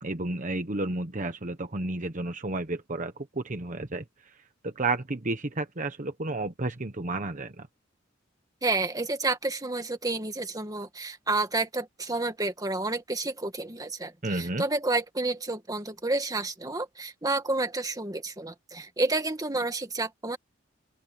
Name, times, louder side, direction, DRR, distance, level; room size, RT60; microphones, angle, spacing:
voice 1, 0.0-4.0 4.6-7.7 14.2-14.6, right 2 dB, 40° right, 1.1 m, -31 dB
voice 2, 8.6-20.4, right 2 dB, 20° right, 1.8 m, -30 dB
open air
head